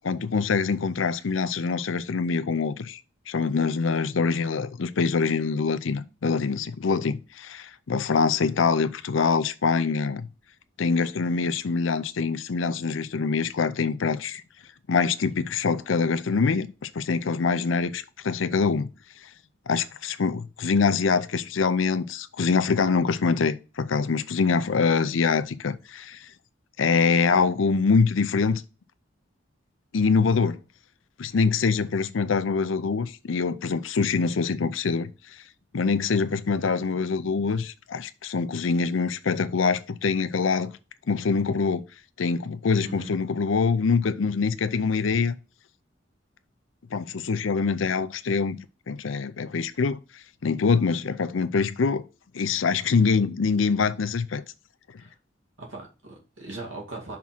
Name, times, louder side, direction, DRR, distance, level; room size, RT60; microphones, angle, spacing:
voice 1, 0.0-3.0 3.3-10.3 10.8-14.4 14.9-18.9 19.7-26.2 26.8-28.6 29.9-30.6 31.2-35.1 35.7-40.7 41.1-41.8 42.2-45.3 46.9-48.6 48.9-50.0 50.4-52.0 52.3-54.4, left 5 dB, 90° left, 0.5 m, -24 dB
voice 2, 55.6-57.2, right 2 dB, 90° right, 2.1 m, -39 dB
5.9 x 3.6 x 5.9 m
head